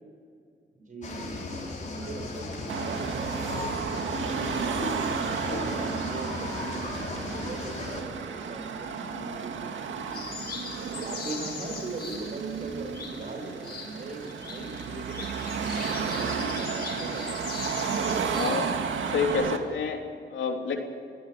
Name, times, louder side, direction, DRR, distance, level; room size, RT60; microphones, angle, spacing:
voice 1, 0.7-1.5 1.9-4.8 5.1-10.4 11.0-17.4, right 3 dB, 45° right, 4 dB, 6.0 m, -40 dB
sound 1, 1.0-8.0, left 3 dB, 40° left, 5.2 m, -36 dB
Car passing by / Traffic noise roadway noise / Engine, 2.7-19.6, right 6 dB, 90° right, 2.1 m, -33 dB
sound 2, 10.1-19.3, left 4 dB, 55° left, 5.2 m, -41 dB
voice 2, 17.8-18.7 19.1-20.0 20.3-20.8, left 5 dB, 85° left, 2 dB, 3.3 m, -29 dB
23.0 x 16.5 x 8.2 m, 2.2 s
cardioid pair, 110°, 19 cm